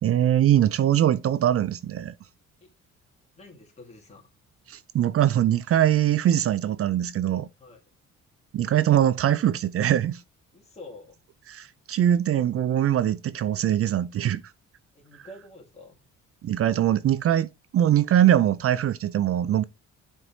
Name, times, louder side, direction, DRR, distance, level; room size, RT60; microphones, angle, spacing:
voice 1, 0.0-2.1 4.7-7.5 8.5-10.2 11.5-14.4 16.4-19.6, right 11 dB, 50° right, 0.4 m, -22 dB
voice 2, 3.4-4.3 7.6-7.8 10.5-11.2 14.9-16.0, left 2 dB, 20° left, 2.2 m, -47 dB
11.0 x 4.5 x 2.6 m
cardioid pair, 90°, 30 cm